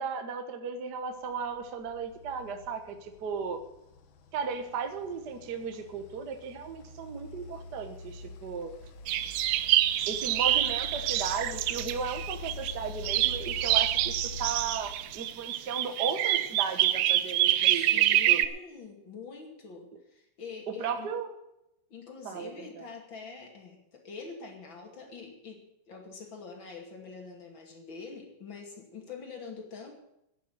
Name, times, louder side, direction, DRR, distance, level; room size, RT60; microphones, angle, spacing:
voice 1, 0.0-3.6 4.3-8.7 10.1-14.1 14.4-18.4 20.8-21.3 22.2-22.8, right 6 dB, 60° right, 6 dB, 1.1 m, -35 dB
sound 1, 1.2-15.7, left 3 dB, 70° left, 1.2 m, -45 dB
sound 2, 9.1-12.7 13.0-18.5, right 13 dB, 75° right, 1.9 m, -26 dB
voice 2, 17.7-21.2 21.9-29.9, left 4 dB, 40° left, 2 dB, 2.9 m, -45 dB
11.0 x 8.3 x 9.3 m, 0.83 s
omnidirectional pair, 3.8 m